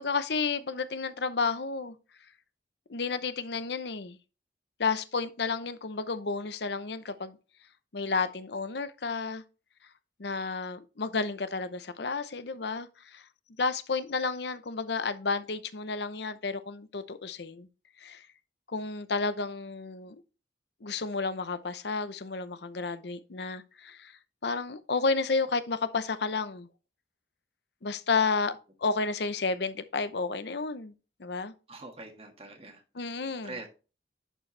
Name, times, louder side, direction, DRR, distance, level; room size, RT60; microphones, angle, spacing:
voice 1, 0.0-1.9 2.9-4.2 4.8-7.4 7.9-9.4 10.2-13.2 13.6-17.7 18.0-18.3 18.7-20.2 20.8-24.1 24.4-26.7 27.8-28.5 28.8-30.9 31.2-31.5 32.9-33.5, left 4 dB, 65° left, 0.7 m, -31 dB
voice 2, 31.7-32.8 33.2-33.7, right 2 dB, 30° right, 1.7 m, -44 dB
11.0 x 4.6 x 3.3 m
head